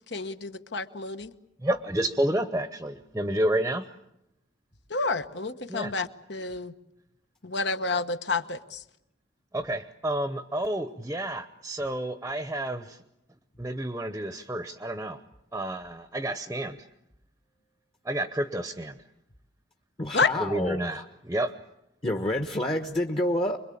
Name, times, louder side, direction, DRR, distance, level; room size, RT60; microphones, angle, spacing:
voice 1, 0.1-1.3 4.9-6.7 7.4-8.8 20.1-20.3, left 4 dB, 65° left, 10 dB, 1.1 m, -29 dB
voice 2, 1.6-3.9 5.7-5.9 9.5-13.0 13.6-15.2 15.5-16.9 18.0-19.0 20.4-21.5, right 1 dB, 15° right, 10 dB, 0.9 m, -30 dB
voice 3, 20.0-21.0 22.0-23.6, left 1 dB, 30° left, 5 dB, 1.2 m, -28 dB
25.5 x 22.5 x 8.6 m, 0.84 s
head